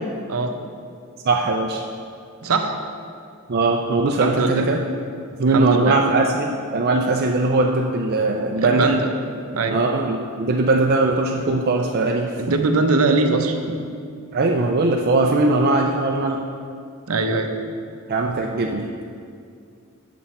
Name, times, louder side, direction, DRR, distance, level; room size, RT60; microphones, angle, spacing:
voice 1, 1.2-1.8 3.5-4.8 5.4-8.9 9.7-12.4 14.3-16.4 18.1-19.0, right 2 dB, 45° right, 1 dB, 0.5 m, -20 dB
voice 2, 2.4-2.8 4.2-4.7 5.5-6.0 8.6-9.1 9.5-9.8 12.4-13.8 17.1-17.5, right 3 dB, 75° right, 5 dB, 0.7 m, -21 dB
8.1 x 7.7 x 4.3 m, 2.3 s
head